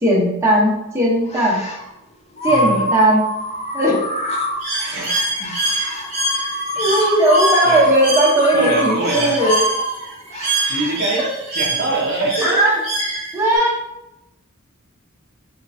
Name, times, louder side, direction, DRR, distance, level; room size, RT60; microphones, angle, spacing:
voice 1, 0.0-1.6 2.4-3.2 3.7-4.0 6.8-9.6 11.2-11.3 12.4-12.8 13.3-13.8, right 1 dB, 15° right, -5 dB, 0.8 m, -17 dB
sound 1, 1.3-1.9 2.4-11.0, equal, 30° left, 0.4 m, -25 dB
voice 2, 2.5-2.9 4.8-5.6 6.7-6.8 7.6-7.9 8.5-9.4 10.7-11.3 11.5-12.5, right 2 dB, 50° right, -2 dB, 0.6 m, -24 dB
Bird, 4.6-13.6, right 2 dB, 30° right, 1.1 m, -25 dB
3.6 x 3.1 x 2.7 m, 0.91 s
head